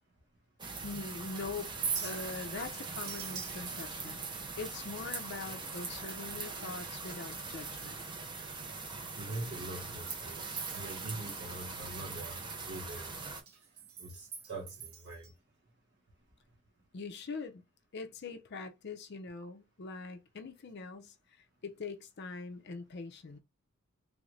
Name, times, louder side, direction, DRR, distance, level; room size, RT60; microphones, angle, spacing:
sound 1, 0.6-13.4, right 4 dB, 20° right, 0.6 m, -42 dB
voice 1, 0.8-8.0 16.9-17.6 17.9-21.1 21.6-23.4, left 4 dB, 50° left, 0.5 m, -43 dB
Chink clink, 1.6-7.3 7.6-8.2 8.6-8.7 9.2-11.6 11.8-15.3, right 6 dB, 85° right, 0.9 m, -44 dB
voice 2, 9.2-13.1 14.0-15.3, right 2 dB, 55° right, 1.3 m, -43 dB
3.4 x 2.5 x 3.1 m
head